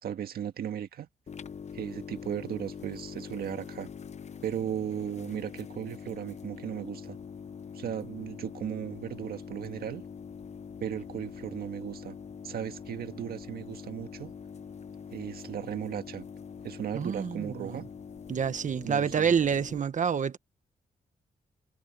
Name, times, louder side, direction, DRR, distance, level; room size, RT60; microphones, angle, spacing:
voice 1, 0.0-1.1 1.7-3.9 4.4-7.2 7.7-10.0 10.8-12.1 12.4-14.3 15.1-16.2 16.6-17.9 18.8-19.3, right 9 dB, 80° right, 1.7 m, -36 dB
sound 1, 1.3-19.8, left 6 dB, 45° left, 0.9 m, -44 dB
voice 2, 16.9-17.8 18.3-20.4, right 7 dB, 55° right, 1.2 m, -28 dB
cardioid pair, 95°, 16 cm